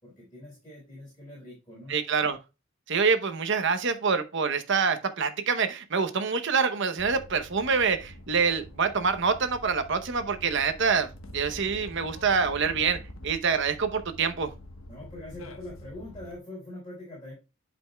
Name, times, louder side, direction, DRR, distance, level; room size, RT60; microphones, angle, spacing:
voice 1, 0.0-1.9 14.9-17.3, left 1 dB, 20° left, 4.6 m, -43 dB
voice 2, 1.9-2.4 2.9-14.5, right 5 dB, 55° right, 0.8 m, -26 dB
sound 1, 7.0-16.3, left 1 dB, 70° left, 1.2 m, -46 dB
11.0 x 5.2 x 2.3 m
head